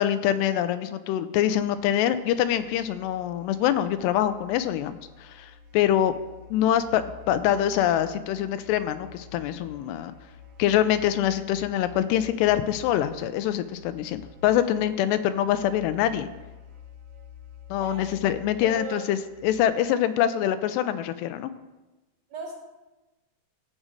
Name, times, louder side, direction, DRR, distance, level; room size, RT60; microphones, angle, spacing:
voice 1, 0.0-6.1 6.5-10.1 10.6-16.3 17.7-21.5, left 11 dB, 85° left, 11 dB, 2.7 m, -25 dB
sound 1, 1.4-19.6, left 7 dB, 60° right, 1.9 m, -48 dB
voice 2, 17.8-18.2 18.6-19.0 22.3-22.5, right 3 dB, 45° right, -4 dB, 3.2 m, -36 dB
14.5 x 5.2 x 7.5 m, 1.1 s
omnidirectional pair, 4.8 m